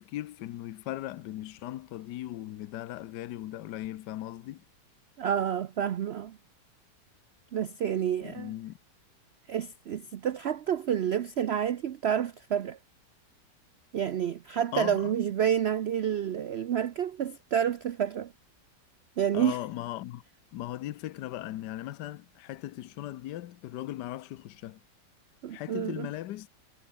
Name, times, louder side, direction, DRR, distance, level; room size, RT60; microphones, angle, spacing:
voice 1, 0.0-4.6 8.2-8.8 14.7-15.1 19.3-20.2 20.5-24.8 25.5-26.5, left 14 dB, 75° left, 1.3 m, -38 dB
voice 2, 5.2-6.4 7.5-8.5 9.5-12.8 13.9-18.3 19.2-19.6 25.4-26.1, right 9 dB, 75° right, 0.6 m, -29 dB
omnidirectional pair, 1.9 m